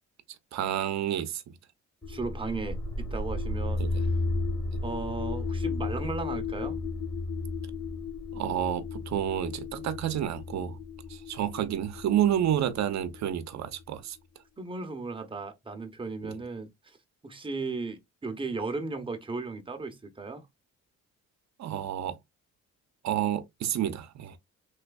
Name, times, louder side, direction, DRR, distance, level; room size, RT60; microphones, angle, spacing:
voice 1, 0.5-1.4 3.8-4.0 8.3-10.8 11.1-14.2 16.2-16.4 21.6-22.2 23.0-24.4, right 10 dB, 65° right, 0.7 m, -29 dB
sound 1, 2.0-13.8, left 3 dB, 10° left, 1.2 m, -34 dB
voice 2, 2.1-4.1 4.8-6.8 14.6-17.0 17.2-20.4, right 3 dB, 15° right, 0.8 m, -36 dB
3.3 x 3.1 x 2.3 m
cardioid pair, 90°, 30 cm